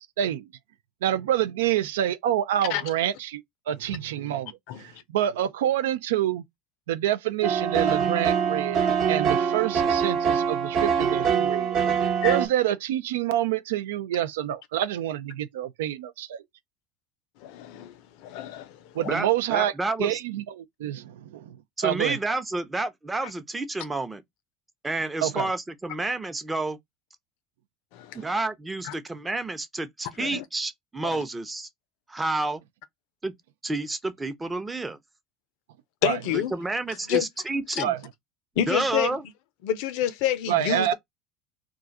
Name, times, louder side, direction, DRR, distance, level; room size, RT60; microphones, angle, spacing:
voice 1, 1.0-6.4 6.9-11.8 12.2-16.4 19.0-19.7 20.0-21.5 21.8-22.2 25.2-25.5 36.0-36.2 37.8-38.0 40.5-40.9, right 12 dB, 75° right, 0.3 m, -27 dB
sound 1, 7.4-12.5, right 7 dB, 50° right, 0.9 m, -24 dB
voice 2, 17.4-17.9 18.2-18.7 19.0-19.1 30.2-30.4 31.0-31.1 36.0-36.5 37.1-37.2 37.8-37.9 38.6-39.1 39.6-40.9, left 11 dB, 65° left, 0.5 m, -27 dB
voice 3, 19.0-20.2 21.8-24.2 24.8-26.8 28.1-31.7 32.1-32.6 33.2-33.3 33.6-35.0 36.3-38.0 38.6-39.2, right 2 dB, 15° right, 0.6 m, -30 dB
2.4 x 2.3 x 4.0 m
hypercardioid pair, 75°, 0 cm